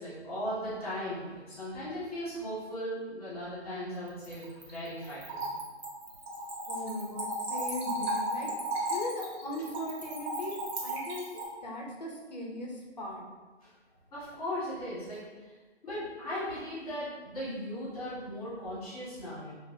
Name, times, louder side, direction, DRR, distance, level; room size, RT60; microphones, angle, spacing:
voice 1, 0.0-5.5 7.6-7.7 8.8-8.9 13.6-13.7 14.1-19.5, equal, 10° left, -10 dB, 1.2 m, -38 dB
Splash splatter / Trickle dribble, 4.1-11.5, right 1 dB, 60° right, 1.2 m, -35 dB
voice 2, 6.7-8.5 8.8-11.2 11.6-13.2, left 1 dB, 40° left, 0 dB, 0.5 m, -38 dB
4.4 x 2.4 x 2.6 m, 1.3 s
hypercardioid pair, 165°, 35 cm